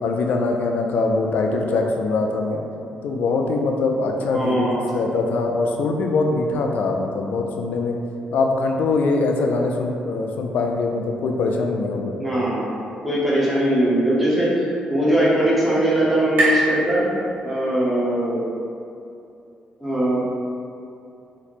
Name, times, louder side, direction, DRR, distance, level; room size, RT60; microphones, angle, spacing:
voice 1, 0.0-2.6 3.0-8.0 8.3-12.1, left 3 dB, 65° left, 2 dB, 0.3 m, -22 dB
voice 2, 4.3-4.8 12.2-12.7 13.0-14.5 14.9-17.1 17.4-18.4 19.8-20.2, right 1 dB, ahead, -9 dB, 0.8 m, -20 dB
sound 1, 14.0-17.8, right 1 dB, 80° right, 0.9 m, -28 dB
3.0 x 2.1 x 4.1 m, 2.6 s
cardioid pair, 155°, 3 cm